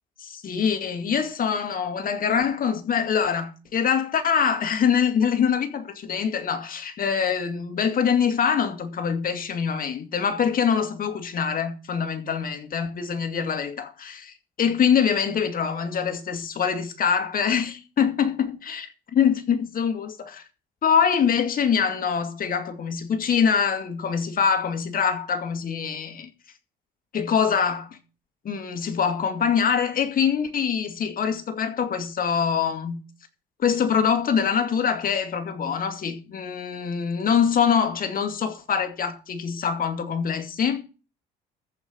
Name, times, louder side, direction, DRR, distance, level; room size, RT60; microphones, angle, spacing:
voice 1, 0.2-20.4 20.8-26.3 27.1-27.9 28.4-33.0 33.6-40.8, left 7 dB, 45° left, 2.2 m, -24 dB
14.0 x 5.2 x 7.9 m
cardioid pair, 105°, 20 cm